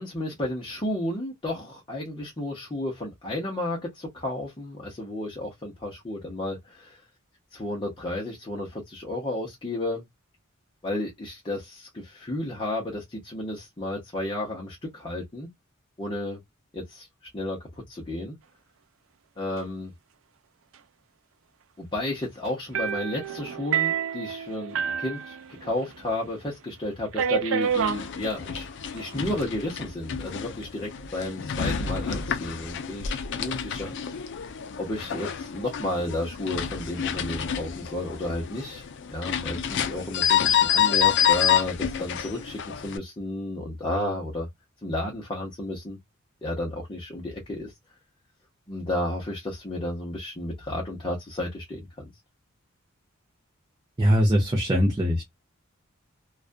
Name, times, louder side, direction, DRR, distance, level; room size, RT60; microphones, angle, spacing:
voice 1, 0.0-7.0 7.5-10.0 10.8-15.5 16.0-16.4 16.7-17.1 17.3-18.4 19.4-19.9 21.8-34.2 34.8-44.5 44.8-46.0 46.4-47.7 48.7-52.1, left 1 dB, 25° left, 0.7 m, -32 dB
sound 1, 22.7-26.0 26.2-26.3 27.1-28.0 29.0-29.4, right 7 dB, 70° right, 0.4 m, -28 dB
sound 2, 27.6-43.0, left 9 dB, 60° left, 0.4 m, -28 dB
voice 2, 54.0-55.2, equal, 20° right, 0.6 m, -21 dB
2.4 x 2.2 x 2.4 m
head